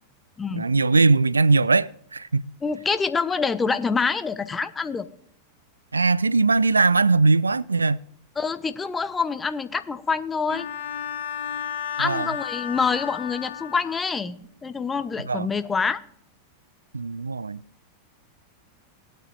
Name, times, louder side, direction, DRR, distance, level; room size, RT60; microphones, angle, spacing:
voice 1, 0.5-2.4 5.9-8.0 12.0-12.3 15.3-15.5 16.9-17.6, right 3 dB, 80° right, 0.3 m, -20 dB
voice 2, 2.6-5.1 8.4-10.7 12.0-16.0, left 5 dB, 15° left, 0.7 m, -26 dB
Bowed string instrument, 10.5-14.2, left 9 dB, 60° left, 1.0 m, -33 dB
19.0 x 9.0 x 2.6 m
figure-of-eight pair, 90°, 0 cm